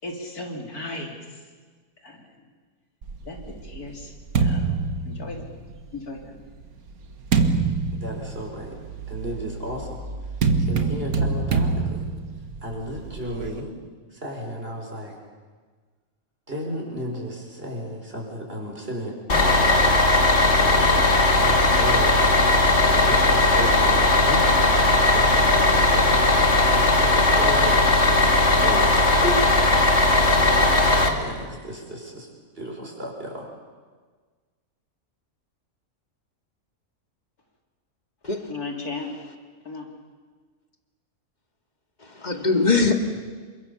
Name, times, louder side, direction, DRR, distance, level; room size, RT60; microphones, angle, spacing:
voice 1, 0.0-1.2 2.0-2.3 3.3-3.4 3.6-4.1 4.4-4.8 5.1-5.4 5.9-6.4 38.5-39.1 39.7-39.9, left 3 dB, 85° left, 1 dB, 4.0 m, -35 dB
sound 1, 3.0-5.8 6.6-13.6, right 4 dB, 75° right, 2.0 m, -26 dB
voice 2, 7.9-8.8 9.1-10.1 10.6-12.1 12.6-13.7 14.1-15.2 16.5-20.1 20.6-28.9 29.2-29.4 30.1-32.3 32.6-33.5, equal, 40° right, 0 dB, 5.9 m, -34 dB
Bus, 19.3-31.1, left 2 dB, 50° left, 2.5 m, -18 dB
voice 3, 42.0-42.9, left 3 dB, 30° left, 4 dB, 2.3 m, -22 dB
28.0 x 24.5 x 7.2 m, 1.5 s
omnidirectional pair, 1.5 m